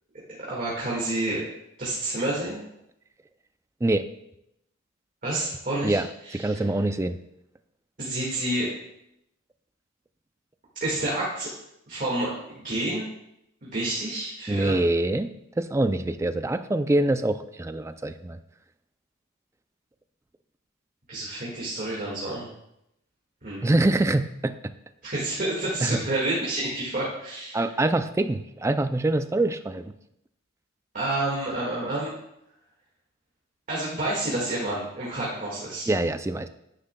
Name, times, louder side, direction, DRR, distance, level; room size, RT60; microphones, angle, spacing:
voice 1, 0.5-1.4 1.8-2.6 5.2-6.0 6.2-6.6 8.0-8.7 10.8-11.5 11.9-13.1 13.6-14.8 21.1-22.5 23.4-23.7 25.0-27.7 30.9-32.1 33.7-35.9, right 2 dB, 40° right, -6 dB, 1.8 m, -29 dB
voice 2, 6.3-7.2 14.5-15.3 15.6-18.4 23.6-24.5 25.8-26.0 27.5-29.9 35.9-36.5, right 2 dB, 15° right, 10 dB, 0.3 m, -24 dB
9.9 x 9.7 x 2.2 m, 0.82 s
head